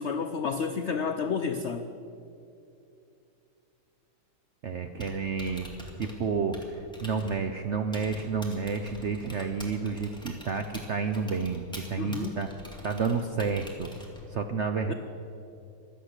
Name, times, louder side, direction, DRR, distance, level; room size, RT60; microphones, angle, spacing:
voice 1, 0.0-1.9 12.0-12.4 14.9-15.0, left 5 dB, 85° left, 8 dB, 0.6 m, -30 dB
voice 2, 4.6-5.7 6.0-12.5 12.8-13.9 14.3-14.9, right 5 dB, 65° right, 6 dB, 0.7 m, -30 dB
Typing, 4.9-14.4, left 1 dB, ahead, 2.1 m, -46 dB
16.0 x 12.5 x 6.6 m, 2.6 s
omnidirectional pair, 2.0 m